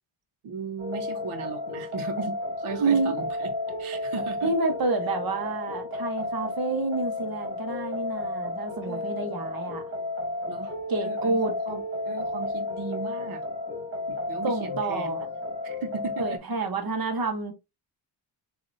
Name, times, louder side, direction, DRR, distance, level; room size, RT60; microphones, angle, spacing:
voice 1, 0.4-3.5 3.8-4.6 8.8-9.4 10.5-10.8 11.0-13.4 14.1-15.3 15.6-16.4, right 5 dB, 90° right, 1.2 m, -37 dB
sound 1, 0.8-16.4, left 2 dB, 30° right, 2.2 m, -32 dB
voice 2, 2.8-3.1 4.4-9.8 10.9-11.5 14.4-15.2 16.2-17.5, right 3 dB, 45° right, 1.2 m, -28 dB
6.6 x 2.8 x 2.7 m
wide cardioid pair, 140°, 48 cm